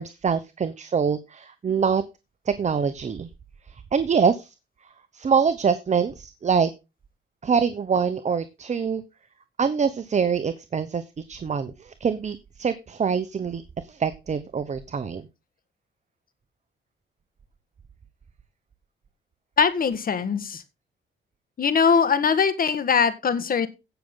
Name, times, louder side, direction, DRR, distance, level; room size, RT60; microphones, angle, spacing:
voice 1, 0.0-2.0 2.5-3.3 3.9-4.5 5.1-6.7 7.4-9.0 9.6-13.6 13.9-15.3, right 6 dB, 35° right, 12 dB, 0.9 m, -24 dB
voice 2, 19.6-20.6 21.6-23.7, left 6 dB, 45° left, 12 dB, 1.7 m, -21 dB
16.0 x 6.5 x 3.8 m, 0.27 s
cardioid pair, 90°, 20 cm